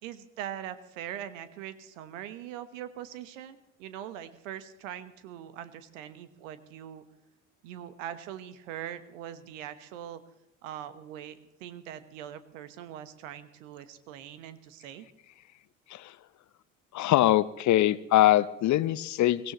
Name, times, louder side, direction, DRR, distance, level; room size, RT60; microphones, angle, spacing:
voice 1, 0.0-7.0 7.6-10.2 10.6-15.1, right 10 dB, 70° right, 13 dB, 1.3 m, -42 dB
voice 2, 16.9-19.5, left 14 dB, 45° left, 17 dB, 0.8 m, -23 dB
23.5 x 16.5 x 3.1 m, 0.86 s
figure-of-eight pair, 55°, 40 cm